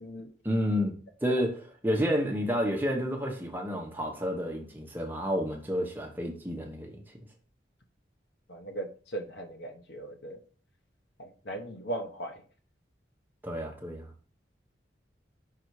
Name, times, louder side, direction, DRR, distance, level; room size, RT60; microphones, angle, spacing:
voice 1, 0.4-7.0 13.4-14.1, equal, 10° right, 1.0 m, -30 dB
voice 2, 8.5-10.4 11.2-12.4, right 1 dB, 75° left, 0.9 m, -38 dB
5.8 x 3.9 x 4.7 m
head